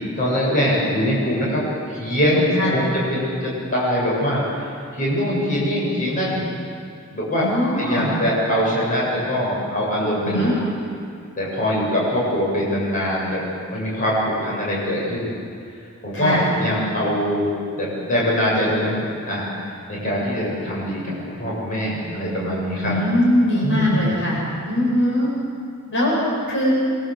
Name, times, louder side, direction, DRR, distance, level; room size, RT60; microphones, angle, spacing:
voice 1, 0.0-1.6 1.9-6.4 7.1-7.5 7.7-10.5 11.4-13.4 13.7-15.3 16.0-17.5 17.7-19.5 19.9-22.9 23.5-24.0, equal, 40° left, -5 dB, 8.0 m, -23 dB
voice 2, 7.4-8.1 10.3-10.5 16.1-16.5 22.8-25.3 25.9-26.2 26.5-26.7, left 1 dB, 60° left, -4 dB, 7.9 m, -21 dB
25.0 x 24.5 x 8.0 m, 2.3 s
head